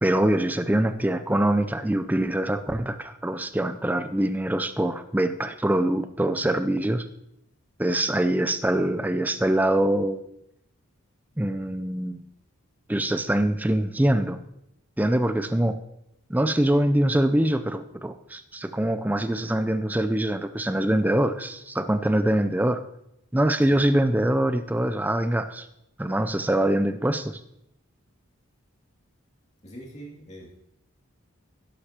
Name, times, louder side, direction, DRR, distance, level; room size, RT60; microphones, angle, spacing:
voice 1, 0.0-7.1 7.8-10.2 11.4-12.2 12.9-14.4 15.0-15.8 16.3-22.8 23.3-25.7 26.0-27.4, right 1 dB, 10° right, 10 dB, 0.4 m, -24 dB
voice 2, 29.6-30.5, right 1 dB, 30° left, -4 dB, 2.4 m, -42 dB
11.5 x 11.5 x 2.9 m, 0.81 s
head